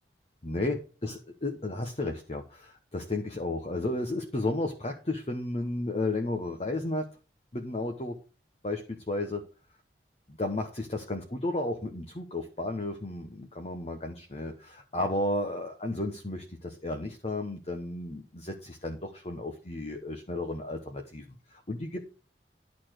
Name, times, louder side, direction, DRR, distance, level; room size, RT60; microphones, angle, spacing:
voice 1, 0.4-7.1 7.5-8.2 8.6-9.4 10.3-21.2 21.5-22.1, left 2 dB, 35° left, 3 dB, 1.1 m, -33 dB
11.0 x 4.2 x 6.6 m, 0.35 s
head